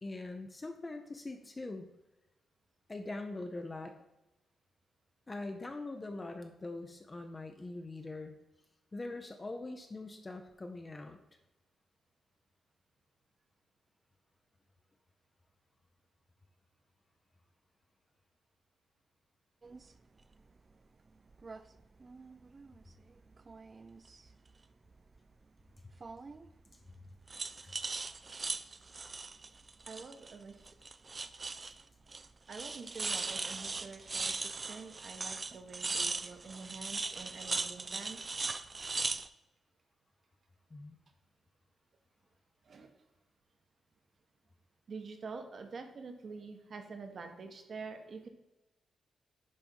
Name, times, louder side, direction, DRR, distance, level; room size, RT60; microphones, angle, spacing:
voice 1, 0.0-1.9 2.9-4.0 5.3-8.3 8.9-11.2 27.6-27.7 40.7-41.0, left 2 dB, 20° left, 5 dB, 0.6 m, -42 dB
sound 1, 19.6-19.8 21.3-21.6 22.0-22.9 23.4-24.3 26.0-26.5 27.3-30.4 30.7-31.8 32.1-32.3 32.5-39.3, right 4 dB, 25° right, 0.3 m, -39 dB
voice 2, 29.9-30.6 32.5-38.2 42.6-42.9 44.9-48.3, right 4 dB, 45° right, 6 dB, 1.1 m, -47 dB
10.5 x 3.5 x 5.3 m, 0.97 s
wide cardioid pair, 150°, 0 cm